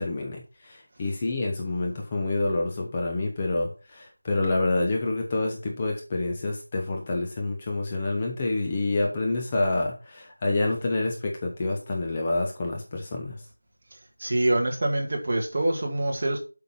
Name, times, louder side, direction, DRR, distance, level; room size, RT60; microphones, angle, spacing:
voice 1, 0.0-13.4, left 2 dB, 15° left, 0.9 m, -28 dB
voice 2, 14.2-16.4, right 1 dB, 30° right, 1.9 m, -25 dB
7.9 x 5.8 x 5.7 m
figure-of-eight pair, 175°, 0 cm